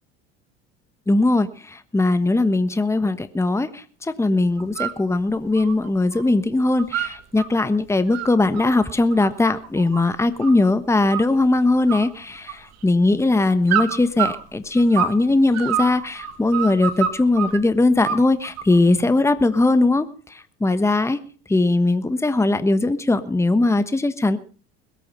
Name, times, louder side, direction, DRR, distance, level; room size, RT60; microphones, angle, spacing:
voice 1, 1.1-21.2 21.5-24.4, left 2 dB, 10° left, 12 dB, 1.2 m, -20 dB
sound 1, 4.6-5.0 5.3-6.3 6.5-7.5 7.9-10.7 11.1-11.6 11.9-12.9 13.7-15.2 15.5-17.6 18.0-18.8, right 9 dB, 55° right, 2.5 m, -27 dB
21.0 x 8.8 x 5.4 m, 0.40 s
hypercardioid pair, 85°, 31 cm